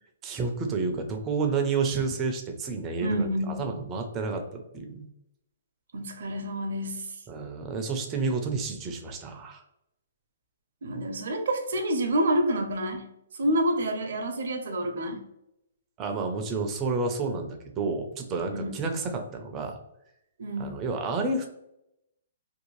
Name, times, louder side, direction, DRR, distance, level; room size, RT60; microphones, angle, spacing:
voice 1, 0.2-5.1 7.3-9.6 16.0-19.8 20.6-21.5, right 4 dB, 20° right, 4 dB, 0.4 m, -30 dB
voice 2, 3.0-3.8 5.9-7.1 10.8-13.1 13.4-15.2 18.5-18.8 20.4-20.8, right 1 dB, 70° right, 4 dB, 0.6 m, -28 dB
2.6 x 2.2 x 3.0 m, 0.83 s
hypercardioid pair, 155°, 0 cm